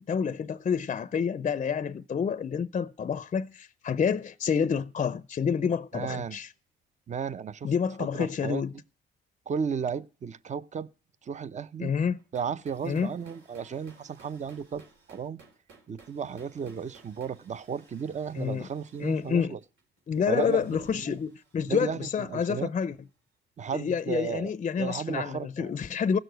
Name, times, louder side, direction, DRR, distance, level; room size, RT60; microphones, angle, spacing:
voice 1, 0.0-6.5 7.6-8.7 11.8-12.2 12.8-13.1 18.4-18.7 19.0-19.6 20.1-23.0 23.7-26.2, left 7 dB, 35° left, 0.5 m, -28 dB
voice 2, 5.9-6.4 7.1-7.7 8.1-8.6 9.5-10.9 11.2-11.9 12.3-15.4 15.9-19.6 20.3-21.2 21.7-22.7 23.6-24.5 24.8-25.7, right 7 dB, 35° right, 0.7 m, -34 dB
sound 1, 12.2-23.0, right 4 dB, 75° right, 3.6 m, -58 dB
16.0 x 6.6 x 7.9 m
cardioid pair, 90°, 20 cm